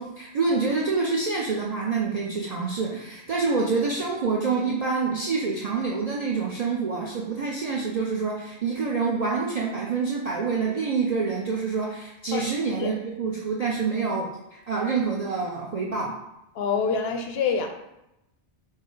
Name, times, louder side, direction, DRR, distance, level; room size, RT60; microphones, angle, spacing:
voice 1, 0.0-16.1, right 4 dB, 55° right, -3 dB, 0.4 m, -27 dB
voice 2, 16.5-17.7, left 5 dB, 65° left, 5 dB, 0.7 m, -26 dB
5.2 x 2.0 x 3.8 m, 0.89 s
omnidirectional pair, 1.2 m